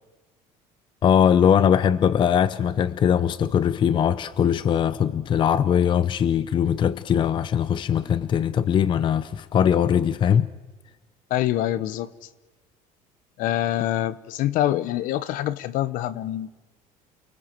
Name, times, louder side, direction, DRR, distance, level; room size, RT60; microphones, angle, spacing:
voice 1, 1.0-10.5, left 8 dB, 30° left, 0.7 m, -21 dB
voice 2, 11.3-12.1 13.4-16.5, left 13 dB, 60° left, 1.2 m, -25 dB
29.0 x 19.0 x 7.7 m
cardioid pair, 145°, 16 cm